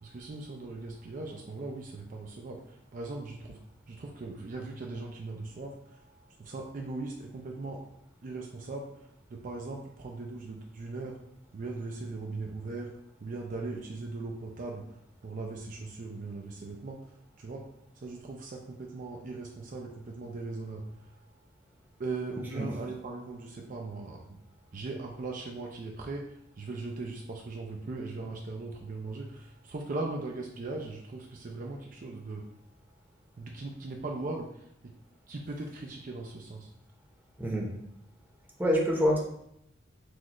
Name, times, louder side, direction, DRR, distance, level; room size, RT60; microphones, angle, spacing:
voice 1, 0.0-3.6 3.9-5.7 6.4-7.8 8.2-8.9 9.3-11.2 11.5-12.9 13.2-14.8 15.2-17.0 17.4-17.6 18.0-20.8 22.0-24.4 24.7-26.2 26.6-32.4 33.4-34.9 35.3-36.7, right 3 dB, 45° right, 0 dB, 0.4 m, -39 dB
voice 2, 38.6-39.2, equal, 10° right, -2 dB, 0.8 m, -26 dB
6.1 x 2.4 x 3.0 m, 0.76 s
head